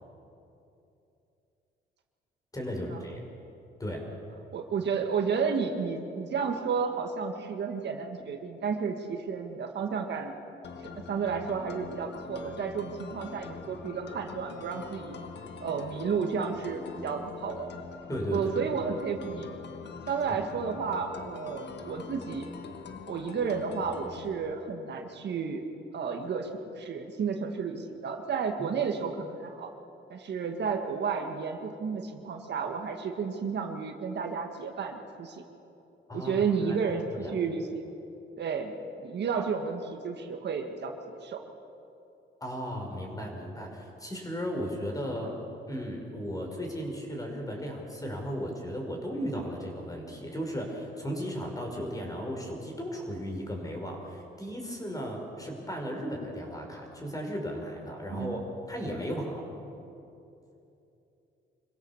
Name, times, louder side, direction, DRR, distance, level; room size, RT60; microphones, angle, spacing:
voice 1, 2.5-3.2 3.8-4.0 18.1-18.5 28.6-28.7 36.1-36.8 37.1-37.4 42.4-45.3 45.7-59.5, equal, 15° left, 1 dB, 5.3 m, -35 dB
voice 2, 4.5-10.4 11.1-15.2 15.6-17.7 18.3-19.5 20.1-22.5 23.1-25.6 25.9-26.5 26.8-29.7 30.1-35.4 36.1-37.8 38.4-38.7 39.0-41.4 45.2-45.3 58.1-58.4, right 5 dB, 60° right, 4 dB, 1.8 m, -32 dB
sound 1, 10.6-24.4, left 5 dB, 60° left, 1.6 m, -44 dB
25.5 x 16.0 x 7.3 m, 2.8 s
cardioid pair, 90°, 20 cm